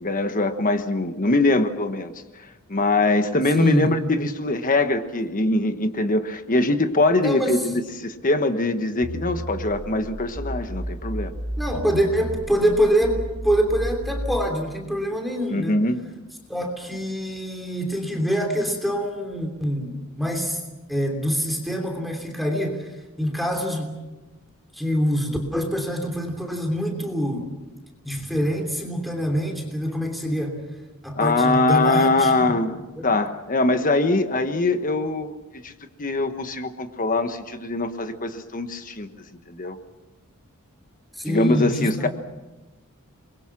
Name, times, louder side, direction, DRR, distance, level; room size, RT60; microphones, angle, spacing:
voice 1, 0.0-2.1 2.7-11.3 15.5-16.0 31.1-32.7 33.0-35.7 36.0-39.1 39.5-39.8 41.3-42.1, left 2 dB, 40° left, 8 dB, 1.3 m, -22 dB
voice 2, 3.5-4.0 7.2-7.7 11.6-15.8 16.5-20.6 20.9-22.9 23.2-24.0 24.7-27.5 28.0-30.6 31.0-32.6 33.0-33.1 41.1-42.1, equal, ahead, 3 dB, 3.1 m, -25 dB
sound 1, 9.0-14.5, right 1 dB, 50° right, 2.5 m, -32 dB
30.0 x 22.5 x 6.1 m, 1.1 s
head